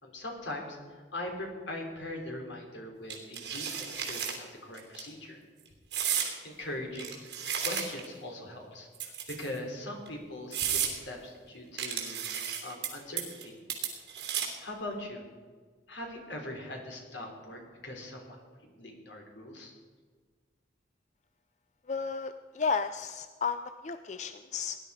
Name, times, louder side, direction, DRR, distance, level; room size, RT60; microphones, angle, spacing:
voice 1, 0.0-5.4 6.4-13.6 14.6-15.2 15.9-18.4 18.7-19.7, left 1 dB, 80° left, 1 dB, 3.4 m, -41 dB
sound 1, 3.1-4.4 4.8-5.0 5.9-6.3 6.9-8.1 8.9-9.6 10.1-10.2 10.5-10.9 11.8-12.9 13.2-13.4 13.7-14.6, right 8 dB, 70° right, 3.0 m, -33 dB
voice 2, 21.9-24.8, left 5 dB, 40° left, 10 dB, 0.4 m, -33 dB
18.5 x 11.0 x 4.9 m, 1.5 s
head